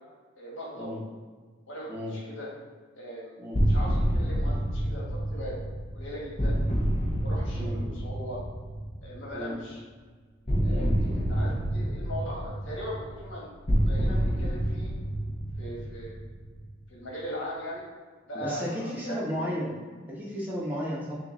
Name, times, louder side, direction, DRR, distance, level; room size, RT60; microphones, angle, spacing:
voice 1, 0.4-0.9 1.7-2.5 2.9-3.3 3.6-5.6 5.9-6.6 7.1-8.4 9.0-9.8 10.6-13.5 13.8-14.9 15.6-16.1 16.9-17.8 18.3-19.2, equal, 80° left, -4 dB, 1.4 m, -39 dB
sound 1, 3.5-9.3 10.5-16.7, equal, 35° left, 1.0 m, -28 dB
voice 2, 18.3-19.7 20.1-21.2, equal, 10° right, -7 dB, 1.0 m, -33 dB
6.2 x 2.6 x 3.1 m, 1.5 s
head